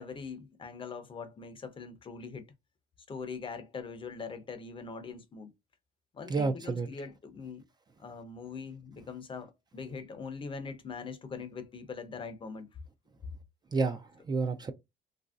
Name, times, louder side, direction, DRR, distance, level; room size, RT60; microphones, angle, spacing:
voice 1, 0.0-2.5 3.1-5.5 6.1-7.7 8.0-12.8, left 5 dB, 30° left, 0.6 m, -42 dB
voice 2, 6.3-6.9 13.7-14.7, right 4 dB, 25° right, 0.4 m, -30 dB
2.9 x 2.6 x 2.3 m
cardioid pair, 110°, 17 cm